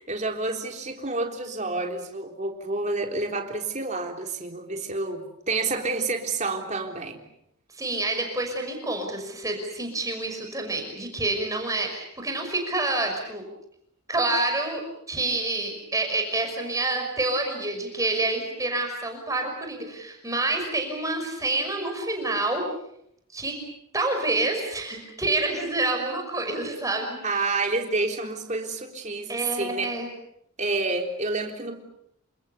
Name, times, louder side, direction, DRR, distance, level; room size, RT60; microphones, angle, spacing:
voice 1, 0.1-7.2 27.2-30.0 30.6-31.8, right 3 dB, 35° right, 3 dB, 3.6 m, -29 dB
voice 2, 7.7-13.4 14.1-14.8 15.1-22.7 23.3-23.6 23.9-27.4 29.3-30.1, right 2 dB, 15° right, 3 dB, 5.7 m, -28 dB
28.5 x 26.5 x 6.8 m, 0.75 s
head